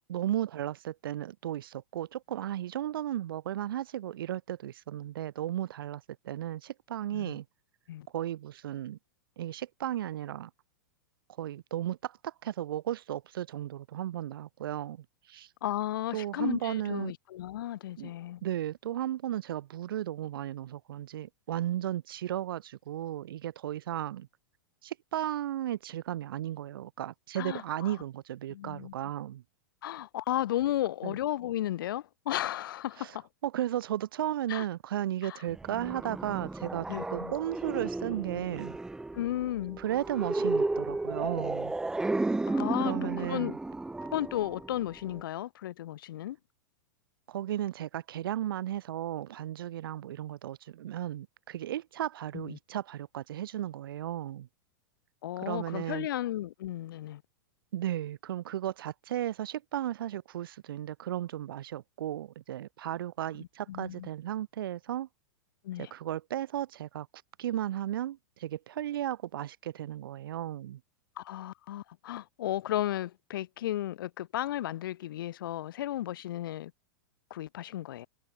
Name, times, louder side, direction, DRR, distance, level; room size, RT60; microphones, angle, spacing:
voice 1, 0.1-7.4 8.1-9.0 9.4-10.5 11.4-15.5 16.1-17.1 18.0-18.1 18.4-24.3 24.8-29.4 31.0-31.2 33.0-33.1 33.4-38.8 39.8-41.7 42.8-43.5 47.3-54.5 55.4-56.1 57.7-65.1 65.8-67.1 67.4-70.8, right 12 dB, 75° right, 7.8 m, -35 dB
voice 2, 15.6-18.4 27.4-27.9 28.5-28.9 29.8-33.3 34.5-34.6 35.2-35.4 36.9-37.3 39.1-39.8 42.5-43.6 44.1-46.4 52.3-52.6 55.2-57.2 63.4-64.1 65.6-65.9 71.2-76.7 77.3-78.1, left 13 dB, 70° left, 3.1 m, -34 dB
sound 1, 35.5-45.2, right 2 dB, 5° right, 2.1 m, -33 dB
supercardioid pair, 145°, 12 cm